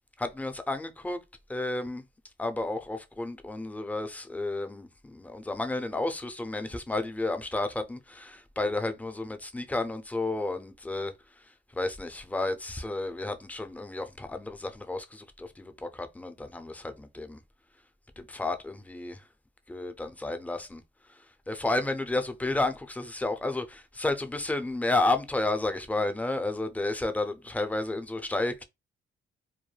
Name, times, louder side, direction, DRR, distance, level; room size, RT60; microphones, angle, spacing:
voice 1, 0.2-1.2 1.5-2.0 2.4-11.1 11.7-17.4 18.2-19.2 19.7-20.8 21.1-21.2 21.5-28.6, left 2 dB, 10° left, 0.4 m, -31 dB
2.2 x 2.1 x 3.1 m
cardioid pair, 90°, 20 cm